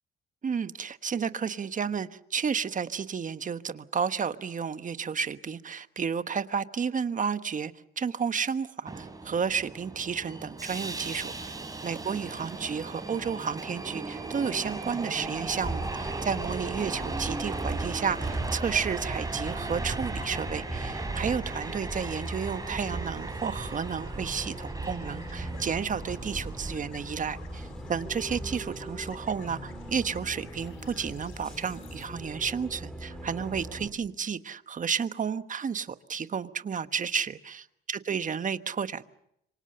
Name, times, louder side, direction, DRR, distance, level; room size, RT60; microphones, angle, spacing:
voice 1, 0.4-39.0, right 6 dB, 40° right, 1.3 m, -32 dB
Subway metro underground, 8.9-26.8, right 3 dB, 20° right, 3.8 m, -37 dB
Bus, 15.6-33.9, right 1 dB, 5° left, 5.3 m, -39 dB
sound 1, 18.4-32.1, left 7 dB, 90° left, 4.7 m, -54 dB
26.5 x 25.0 x 6.8 m
cardioid pair, 90°, 20 cm